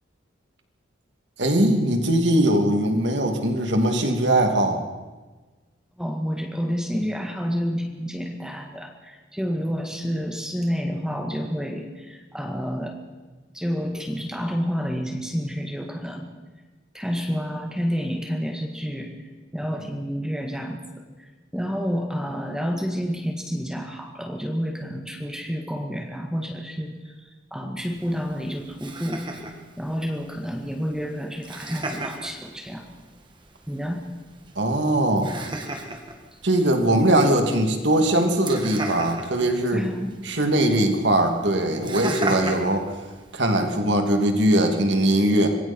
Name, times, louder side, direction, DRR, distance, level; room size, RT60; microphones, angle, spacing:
voice 1, 1.4-4.8 34.6-35.3 36.4-39.8 40.2-42.9 43.3-45.5, right 1 dB, 70° right, 4 dB, 2.9 m, -21 dB
voice 2, 6.0-13.0 13.5-16.3 16.9-20.8 21.2-29.3 29.8-32.9 33.7-34.1 36.3-36.4 39.7-40.2, equal, 5° right, 2 dB, 1.7 m, -29 dB
Laughter, 27.8-43.8, right 2 dB, 25° right, 2.1 m, -37 dB
25.5 x 22.0 x 4.6 m, 1.3 s
head